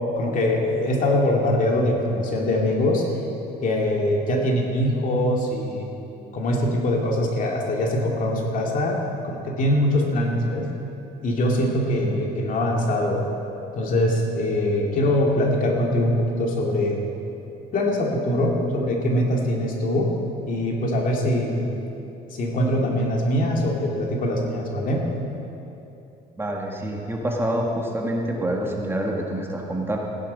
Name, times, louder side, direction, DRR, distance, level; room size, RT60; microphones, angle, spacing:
voice 1, 0.0-3.0 3.6-5.9 6.3-10.7 11.2-13.3 13.7-17.1 17.7-20.1 20.5-21.7 22.3-25.1, left 1 dB, 55° left, -1 dB, 2.4 m, -23 dB
voice 2, 26.4-30.0, right 1 dB, 15° right, -1 dB, 1.8 m, -26 dB
16.0 x 10.0 x 5.5 m, 2.9 s
cardioid pair, 110°, 17 cm